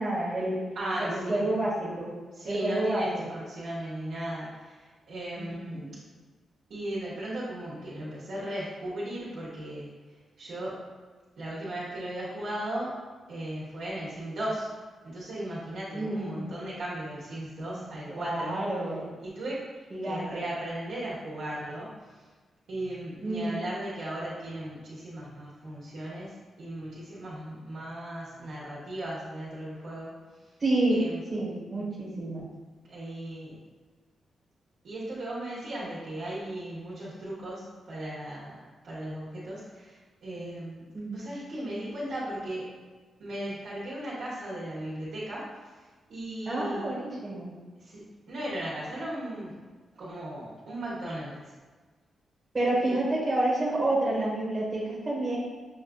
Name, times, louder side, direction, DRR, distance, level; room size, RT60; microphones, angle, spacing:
voice 1, 0.0-0.6 1.0-2.1 2.4-3.3 5.4-5.9 15.9-16.5 17.6-17.8 18.1-19.1 19.9-20.4 23.2-23.6 30.6-31.0 31.3-32.4 40.9-41.2 46.4-47.5 52.5-55.4, right 1 dB, 25° right, -6 dB, 1.2 m, -29 dB
voice 2, 0.7-1.5 2.3-5.8 6.7-9.9 10.4-10.8 11.4-12.9 13.3-14.7 15.0-18.6 19.2-19.7 20.0-22.3 22.7-30.1 30.9-31.2 32.8-33.6 34.8-42.7 43.2-45.8 46.1-46.9 47.8-49.6 49.9-51.5 52.8-53.0, right 1 dB, 80° right, -10 dB, 1.2 m, -37 dB
6.5 x 2.4 x 2.3 m, 1.4 s
wide cardioid pair, 150°, 0 cm